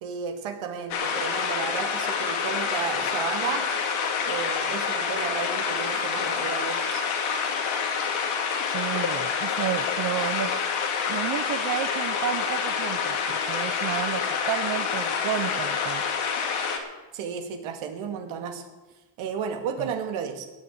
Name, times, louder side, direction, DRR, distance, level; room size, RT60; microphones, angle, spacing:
voice 1, 0.0-3.6 4.3-7.0 17.1-18.6 19.2-20.5, right 7 dB, 85° right, 4 dB, 2.4 m, -33 dB
sound 1, 0.9-16.8, left 6 dB, 85° left, 2.5 m, -27 dB
voice 2, 8.7-10.5 11.1-16.0 19.8-19.9, right 11 dB, 50° right, 11 dB, 0.7 m, -31 dB
17.5 x 6.9 x 8.6 m, 1.1 s
cardioid pair, 115°, 48 cm